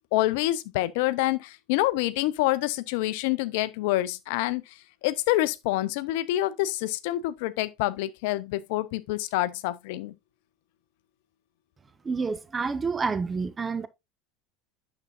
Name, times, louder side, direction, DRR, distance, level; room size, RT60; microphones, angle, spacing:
voice 1, 0.1-10.1, left 16 dB, 60° left, 0.5 m, -27 dB
voice 2, 12.0-13.9, right 4 dB, 20° right, 0.8 m, -28 dB
9.0 x 6.9 x 2.7 m
figure-of-eight pair, 75°, 0 cm